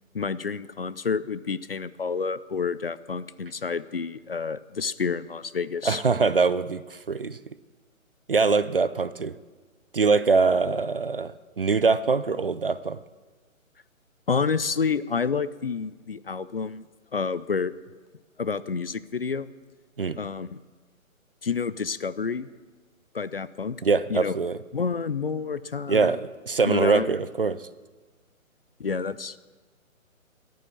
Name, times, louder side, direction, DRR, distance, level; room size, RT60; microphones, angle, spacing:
voice 1, 0.1-6.0 14.3-16.9 17.1-17.7 18.4-19.5 20.2-20.6 21.4-22.5 23.1-23.8 24.1-24.3 24.7-26.2 26.7-27.2 28.8-29.4, left 5 dB, 45° left, 16 dB, 0.4 m, -29 dB
voice 2, 5.8-7.4 8.3-9.3 9.9-11.3 11.6-13.0 20.0-20.2 23.8-24.6 25.9-27.7, right 4 dB, 45° right, 16 dB, 0.4 m, -23 dB
14.0 x 9.3 x 7.2 m, 1.3 s
figure-of-eight pair, 155°, 42 cm